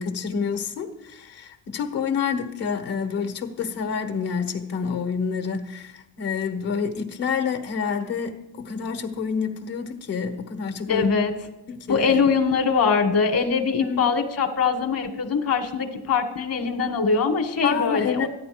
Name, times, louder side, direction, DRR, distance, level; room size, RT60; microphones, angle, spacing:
voice 1, 0.0-11.1 11.7-12.2 13.8-14.1 17.6-18.3, left 6 dB, 75° left, 1.5 m, -28 dB
voice 2, 10.9-11.3 11.9-18.3, left 5 dB, 55° left, 1.6 m, -22 dB
13.5 x 10.5 x 5.2 m
cardioid pair, 100°, 41 cm